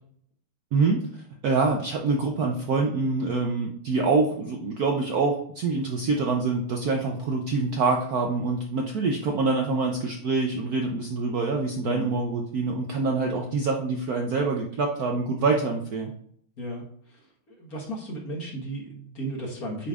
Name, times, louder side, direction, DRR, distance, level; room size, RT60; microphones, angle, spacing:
voice 1, 0.7-1.0 1.4-16.1, right 3 dB, 70° right, 2 dB, 0.9 m, -25 dB
voice 2, 17.5-19.9, right 1 dB, 45° left, -2 dB, 1.7 m, -34 dB
8.7 x 5.2 x 2.4 m, 0.65 s
omnidirectional pair, 2.3 m